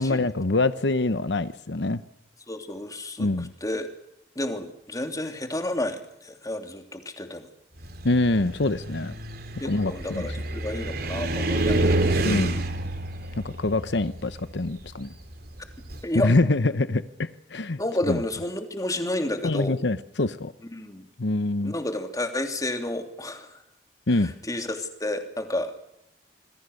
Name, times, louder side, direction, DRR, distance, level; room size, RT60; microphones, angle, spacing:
voice 1, 0.0-2.0 3.2-3.5 8.0-9.1 9.6-10.3 12.2-12.7 13.4-15.1 16.1-17.8 18.1-18.2 19.4-20.5 21.2-21.7 24.1-24.3, left 2 dB, 75° left, 12 dB, 1.0 m, -25 dB
voice 2, 2.5-3.9 4.3-7.5 9.6-12.0 16.0-16.3 17.8-19.8 20.7-21.1 21.6-23.6 24.1-25.7, left 1 dB, 20° left, 5 dB, 3.0 m, -31 dB
Car, 7.8-16.0, right 2 dB, 60° right, 3.4 m, -28 dB
27.5 x 21.0 x 6.6 m, 0.81 s
head